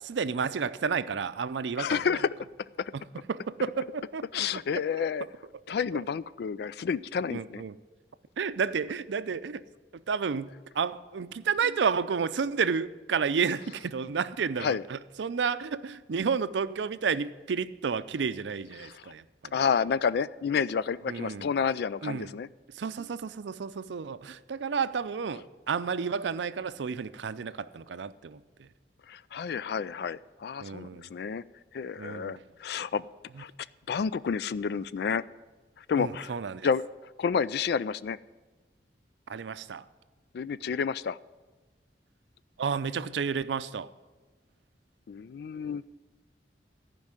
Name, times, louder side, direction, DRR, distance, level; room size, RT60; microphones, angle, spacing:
voice 1, 0.1-2.0 3.3-4.2 4.5-4.6 7.3-7.7 8.4-9.6 10.1-10.5 10.8-19.5 21.1-21.5 22.0-22.3 22.7-28.4 30.6-31.1 32.0-32.4 36.0-36.7 39.3-39.8 42.6-43.9, right 6 dB, 85° right, 0.5 m, -31 dB
voice 2, 1.8-2.3 2.8-2.9 4.3-5.3 5.7-7.6 14.6-14.8 18.8-19.1 19.5-22.5 29.1-31.4 31.7-33.0 33.4-33.5 33.9-35.2 35.8-36.3 36.6-36.8 37.2-38.2 40.3-41.2 45.1-45.9, left 6 dB, 60° left, 0.3 m, -30 dB
14.0 x 5.3 x 8.9 m
head